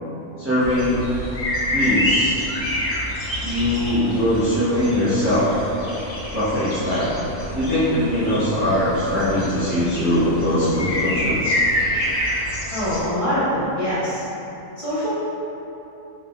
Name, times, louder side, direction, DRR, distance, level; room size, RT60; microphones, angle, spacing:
voice 1, 0.4-1.0 1.7-2.4 3.4-5.5 6.3-7.1 7.5-11.6, left 1 dB, 15° right, -13 dB, 0.5 m, -21 dB
sound 1, 0.6-13.0, left 1 dB, 70° left, 0.3 m, -27 dB
voice 2, 12.7-14.2 14.8-15.1, equal, 25° left, -13 dB, 1.1 m, -23 dB
4.1 x 3.8 x 2.2 m, 3.0 s
omnidirectional pair, 1.6 m